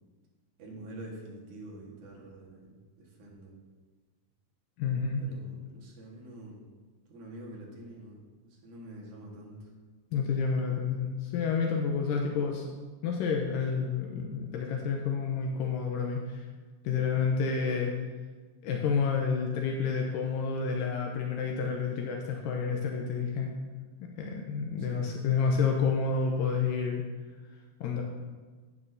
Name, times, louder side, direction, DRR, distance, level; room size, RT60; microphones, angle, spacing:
voice 1, 0.6-3.5 5.2-6.6 7.1-9.7 24.8-25.0, right 1 dB, 60° right, -3 dB, 2.7 m, -46 dB
voice 2, 4.8-5.2 10.1-12.7 13.0-16.4 16.8-17.9 18.6-23.5 24.0-27.0 27.8-28.0, left 5 dB, 80° left, 1 dB, 2.2 m, -29 dB
10.5 x 8.8 x 2.7 m, 1.4 s
omnidirectional pair, 4.2 m